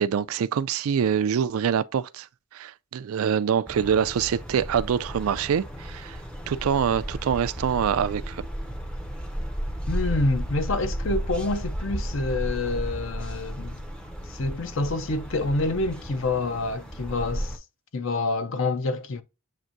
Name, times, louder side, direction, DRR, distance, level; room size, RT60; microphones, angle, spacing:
voice 1, 0.0-2.3 2.5-6.2 6.5-8.5, right 7 dB, 80° right, 0.3 m, -25 dB
sound 1, 3.7-17.6, equal, 5° left, 0.5 m, -34 dB
voice 2, 9.9-13.8 14.3-17.6 17.9-19.2, left 2 dB, 60° left, 0.6 m, -27 dB
7.5 x 2.6 x 2.6 m
head